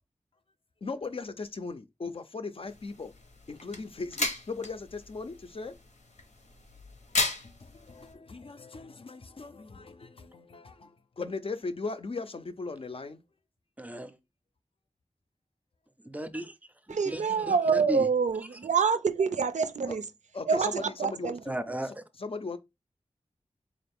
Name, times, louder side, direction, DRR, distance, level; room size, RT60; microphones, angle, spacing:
voice 1, 0.8-3.1 3.5-5.8 7.2-13.2 19.9-20.0 20.3-22.6, left 3 dB, 50° left, 0.5 m, -38 dB
sound 1, 2.7-8.1, left 2 dB, 80° left, 0.8 m, -36 dB
voice 2, 13.8-14.1 16.1-16.5 17.1-18.0 21.5-21.9, equal, 15° right, 0.5 m, -35 dB
voice 3, 16.9-20.0 20.5-21.4, right 5 dB, 85° right, 0.4 m, -26 dB
3.8 x 2.5 x 3.4 m
wide cardioid pair, 75°, 12 cm